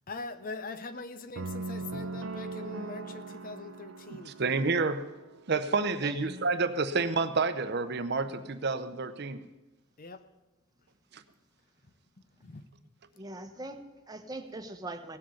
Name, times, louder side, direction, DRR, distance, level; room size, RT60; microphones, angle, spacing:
voice 1, 0.1-4.4 10.0-10.2 12.4-12.6, left 3 dB, 45° left, 0.7 m, -42 dB
sound 1, 1.3-5.5, right 3 dB, 85° right, 0.7 m, -40 dB
voice 2, 4.1-5.0 5.5-9.4 11.1-11.2, right 4 dB, 55° right, 0.8 m, -29 dB
voice 3, 5.8-6.2 13.1-15.2, right 2 dB, 20° right, 1.1 m, -42 dB
17.0 x 7.7 x 7.0 m
head